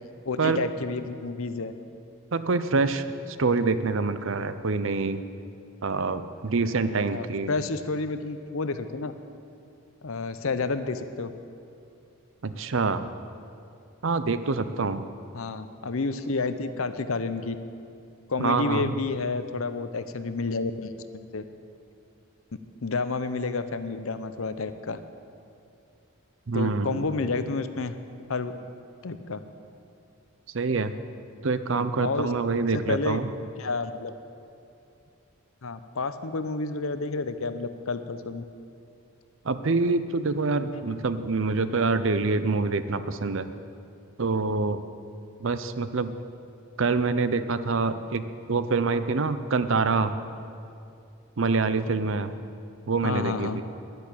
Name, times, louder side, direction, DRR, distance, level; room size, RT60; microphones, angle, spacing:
voice 1, 0.3-1.7 7.1-9.1 10.0-11.3 15.3-17.5 18.3-21.4 22.8-25.0 26.5-28.0 28.3-28.6 29.0-29.4 32.0-32.3 32.9-33.2 33.6-34.1 35.6-38.4 53.0-53.6, left 3 dB, 70° left, 11 dB, 0.7 m, -30 dB
voice 2, 2.3-5.2 5.8-7.5 12.4-13.1 14.0-15.1 18.4-18.9 26.5-27.1 30.5-30.9 31.4-33.3 39.4-43.5 44.2-44.8 45.4-46.1 46.8-50.2 51.4-52.4 52.9-53.6, right 4 dB, 60° right, 12 dB, 0.6 m, -26 dB
11.0 x 10.5 x 8.5 m, 2.6 s
head